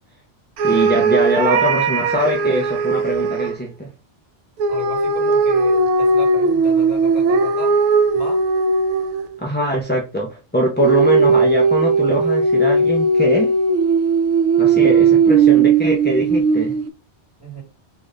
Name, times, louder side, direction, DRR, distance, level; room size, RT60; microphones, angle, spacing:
voice 1, 0.6-3.9 9.4-13.5 14.6-16.8, equal, 15° left, 0.4 m, -22 dB
sound 1, 0.6-3.6 4.6-9.4 10.8-16.9, right 4 dB, 85° right, 0.9 m, -17 dB
voice 2, 4.7-7.8 8.1-8.4 17.4-17.6, left 1 dB, 15° right, 1.9 m, -35 dB
3.3 x 2.6 x 3.7 m
omnidirectional pair, 1.2 m